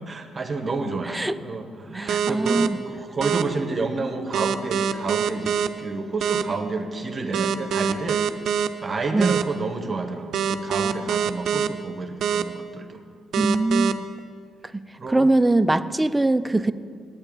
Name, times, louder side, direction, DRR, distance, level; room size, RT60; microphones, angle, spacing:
voice 1, 0.1-8.2 8.8-13.0 13.7-13.9 15.0-15.3, right 3 dB, 30° right, 5 dB, 1.0 m, -30 dB
voice 2, 1.9-2.8 9.1-9.3 13.4-14.1 15.1-16.7, right 2 dB, 10° right, 12 dB, 0.4 m, -21 dB
sound 1, 2.1-2.7 3.2-3.4 4.3-5.7 6.2-6.4 7.3-8.7 9.2-9.4 10.3-11.7 12.2-12.4 13.3-13.9, right 8 dB, 70° right, 0.5 m, -23 dB
8.8 x 8.8 x 8.8 m, 2.1 s
cardioid pair, 90°, 0 cm